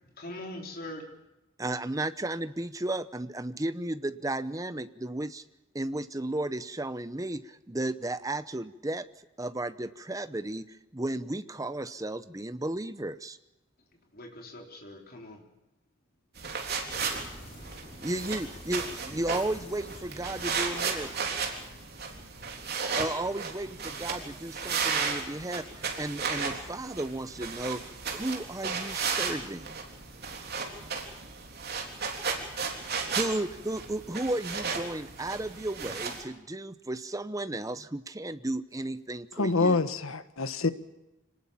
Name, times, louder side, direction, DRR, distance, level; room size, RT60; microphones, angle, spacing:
voice 1, 0.0-1.1 14.1-15.4, left 1 dB, 45° left, 3.9 m, -42 dB
voice 2, 1.6-5.4 5.7-9.0 9.4-13.4 18.0-21.3 22.9-25.7 26.0-27.8 28.1-29.7 33.1-39.8, right 1 dB, 15° right, 0.8 m, -34 dB
sound 1, 16.4-36.2, right 5 dB, 50° right, 3.6 m, -34 dB
sound 2, 16.6-21.9, left 1 dB, 30° left, 5.1 m, -48 dB
voice 3, 39.4-40.7, left 3 dB, 80° left, 1.3 m, -26 dB
25.5 x 19.0 x 7.2 m
head